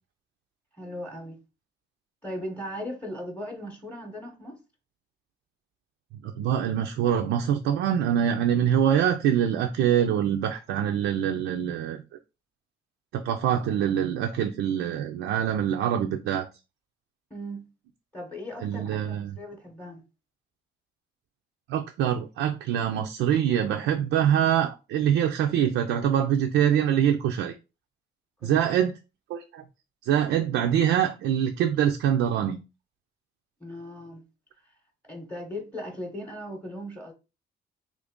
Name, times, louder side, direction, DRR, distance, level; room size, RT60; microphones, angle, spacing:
voice 1, 0.8-1.4 2.2-4.6 17.3-17.6 18.1-20.0 28.4-28.7 33.6-34.2 34.6-34.7 35.0-37.1, equal, 5° left, 0.8 m, -38 dB
voice 2, 6.2-12.0 13.1-16.5 18.6-19.4 21.7-27.5 28.4-28.9 29.3-29.6 30.0-32.6, right 9 dB, 85° right, 0.4 m, -24 dB
3.0 x 2.5 x 3.5 m
cardioid pair, 90°, 20 cm